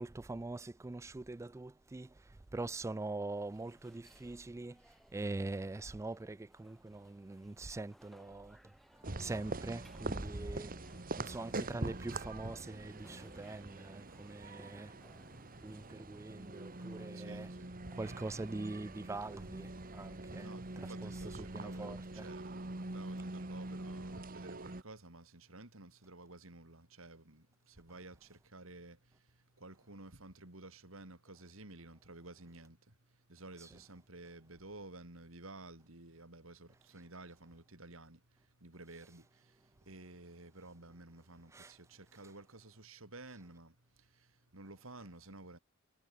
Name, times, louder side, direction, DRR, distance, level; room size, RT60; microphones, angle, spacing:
voice 1, 0.0-10.8 11.2-15.0 15.6-17.5 17.9-21.1 21.4-22.3 41.5-41.7, right 2 dB, 15° right, 0.3 m, -43 dB
sound 1, 2.1-19.1, equal, ahead, 2.9 m, -67 dB
sound 2, 9.0-24.8, right 2 dB, 45° right, 1.8 m, -44 dB
voice 2, 17.1-17.8 20.4-45.6, right 2 dB, 75° right, 3.9 m, -53 dB
head